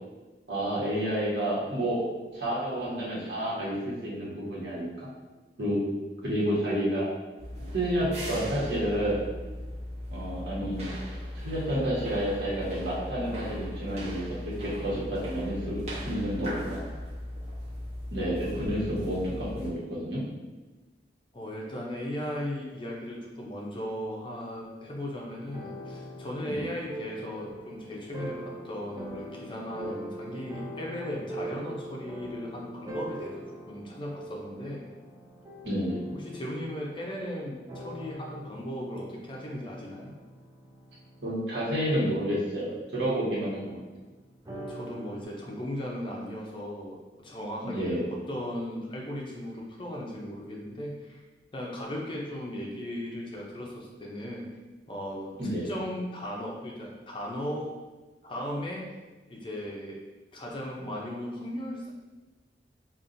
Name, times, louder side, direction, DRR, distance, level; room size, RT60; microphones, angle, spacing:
voice 1, 0.5-2.0 2.3-5.1 5.6-5.8 6.2-7.1 7.7-9.2 10.1-10.8 11.3-16.8 18.1-20.2 26.5-26.7 35.6-36.0 41.2-43.8 47.6-48.1 55.4-55.7, equal, 75° right, -6 dB, 1.3 m, -30 dB
sound 1, 7.4-19.7, left 1 dB, 40° right, 1.0 m, -38 dB
voice 2, 21.3-34.9 36.1-40.2 44.5-51.2 51.5-54.5 54.9-55.3 55.6-57.7 58.2-58.9 59.3-60.0 60.3-61.9, equal, 30° left, -2 dB, 0.5 m, -37 dB
sound 2, 25.5-45.2, right 1 dB, 20° right, 0.5 m, -42 dB
5.3 x 2.5 x 2.5 m, 1.2 s
head